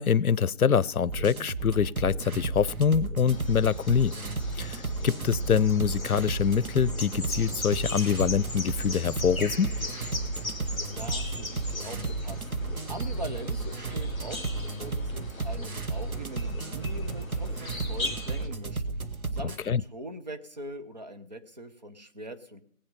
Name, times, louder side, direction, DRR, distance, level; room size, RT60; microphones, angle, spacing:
voice 1, 0.0-4.1 4.6-9.8 19.7-19.8, left 7 dB, 85° left, 22 dB, 0.7 m, -25 dB
sound 1, 1.1-19.6, right 3 dB, 80° right, 1.7 m, -33 dB
sound 2, 3.3-18.5, left 2 dB, 5° left, 1.3 m, -39 dB
voice 2, 10.9-12.5 12.9-22.6, right 1 dB, 30° right, 6 dB, 1.0 m, -42 dB
19.5 x 8.6 x 5.4 m, 0.66 s
figure-of-eight pair, 165°, 42 cm